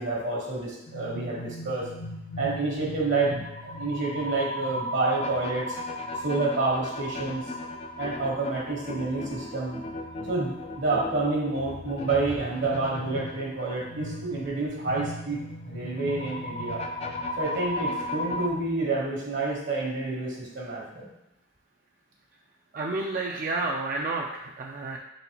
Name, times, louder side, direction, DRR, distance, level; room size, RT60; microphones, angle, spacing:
voice 1, 0.0-1.9 2.4-5.8 6.2-7.5 8.0-9.8 10.3-15.4 15.6-16.8 17.4-21.1, right 3 dB, 70° right, -4 dB, 1.2 m, -29 dB
sound 1, 0.9-18.5, left 1 dB, 35° left, 0.3 m, -36 dB
voice 2, 22.7-25.0, right 3 dB, 45° right, -1 dB, 0.4 m, -30 dB
4.2 x 4.0 x 2.9 m, 0.87 s
head